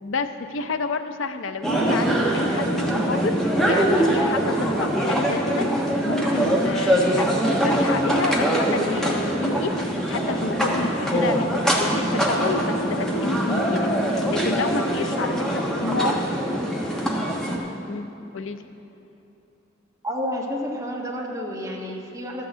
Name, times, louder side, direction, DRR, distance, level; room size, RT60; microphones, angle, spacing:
voice 1, 0.0-3.4 3.6-5.7 6.0-9.7 10.1-16.2 17.9-18.6, left 4 dB, 75° left, 9 dB, 0.6 m, -30 dB
sound 1, 1.6-17.6, equal, 5° left, 1.3 m, -23 dB
voice 2, 15.9-16.3 16.6-16.8 20.0-22.4, equal, 15° right, -3 dB, 1.5 m, -30 dB
12.5 x 6.5 x 8.0 m, 2.8 s
head